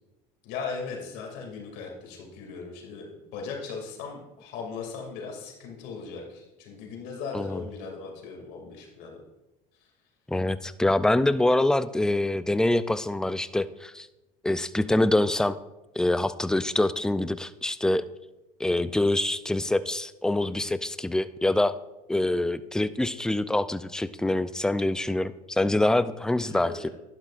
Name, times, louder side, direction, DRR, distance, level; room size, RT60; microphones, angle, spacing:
voice 1, 0.4-3.1 3.3-9.2 26.5-26.9, left 5 dB, 70° left, 1 dB, 2.5 m, -38 dB
voice 2, 10.3-14.1 14.4-15.6 16.0-18.0 18.6-21.8 22.1-26.7, left 1 dB, 5° left, 13 dB, 0.4 m, -25 dB
11.5 x 11.0 x 2.5 m, 0.99 s
supercardioid pair, 100°, 18 cm